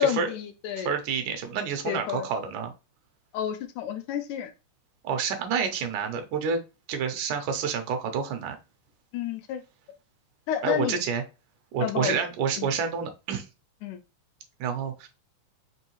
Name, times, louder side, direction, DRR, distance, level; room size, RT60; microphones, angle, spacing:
voice 1, 0.0-0.9 1.9-2.3 3.3-4.5 9.1-9.6 10.5-11.0 11.8-12.2 12.6-12.7 13.8-14.0, left 9 dB, 80° left, 7 dB, 1.9 m, -30 dB
voice 2, 0.8-2.7 5.0-6.6 6.9-8.6 10.6-11.2 11.7-13.5 14.6-15.1, right 6 dB, 75° right, 6 dB, 2.2 m, -28 dB
5.4 x 3.1 x 3.0 m, 0.29 s
omnidirectional pair, 3.7 m